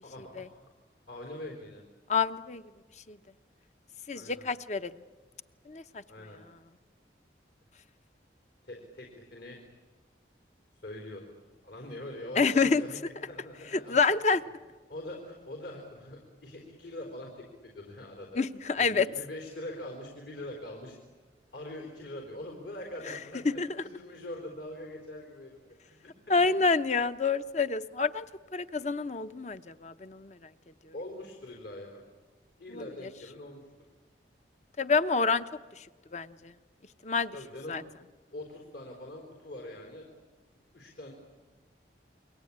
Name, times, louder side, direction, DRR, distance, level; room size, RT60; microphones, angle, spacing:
voice 1, 0.0-0.6 1.1-1.8 4.1-4.5 6.1-6.4 8.6-9.6 10.8-11.3 11.6-14.0 14.9-18.4 18.8-21.0 21.5-26.6 30.9-32.0 32.6-33.6 37.3-37.8 38.3-40.1 40.7-41.1, left 1 dB, 70° left, 1 dB, 4.3 m, -43 dB
voice 2, 2.1-2.6 3.1-3.2 4.1-4.9 5.7-6.0 12.4-12.8 13.7-14.4 18.3-19.1 23.1-23.2 23.6-23.7 26.3-28.2 28.5-30.4 30.8-30.9 32.7-32.8 34.8-35.5 35.8-35.9 36.1-36.5 37.0-37.4 37.7-37.8, left 4 dB, 40° left, 11 dB, 0.8 m, -27 dB
29.0 x 23.0 x 8.7 m, 1.3 s
head